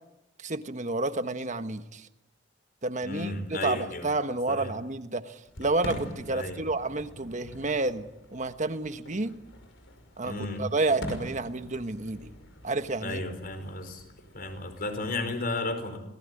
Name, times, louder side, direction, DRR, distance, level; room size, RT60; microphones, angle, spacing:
voice 1, 0.4-2.1 2.8-9.4 10.2-12.3 12.6-13.2, right 2 dB, 40° right, 10 dB, 1.4 m, -30 dB
voice 2, 3.0-4.1 4.5-4.7 6.3-6.6 10.2-10.6 13.0-14.0 14.3-16.0, left 2 dB, 50° left, 7 dB, 5.0 m, -33 dB
Fireworks, 5.4-15.3, left 1 dB, 75° left, 5.5 m, -44 dB
26.5 x 20.0 x 9.9 m, 0.94 s
head